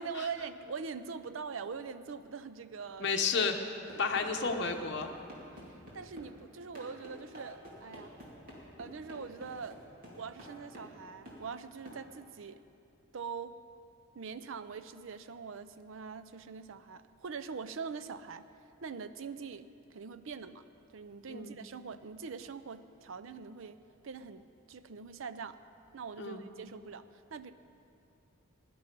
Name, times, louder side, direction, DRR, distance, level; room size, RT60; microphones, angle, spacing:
voice 1, 0.0-3.1 5.7-8.1 8.8-9.8 10.1-12.6 13.1-13.6 14.1-18.5 18.8-20.6 20.9-25.6 25.9-27.5, right 5 dB, 65° right, 12 dB, 0.5 m, -43 dB
voice 2, 3.0-3.6 4.0-5.1 21.3-21.6 26.2-26.4, left 5 dB, 55° left, 4 dB, 0.9 m, -31 dB
sound 1, 3.9-6.3 6.7-11.0 11.3-11.4 11.9-12.0, equal, 40° right, 2.7 m, -49 dB
17.0 x 11.0 x 5.3 m, 2.7 s
head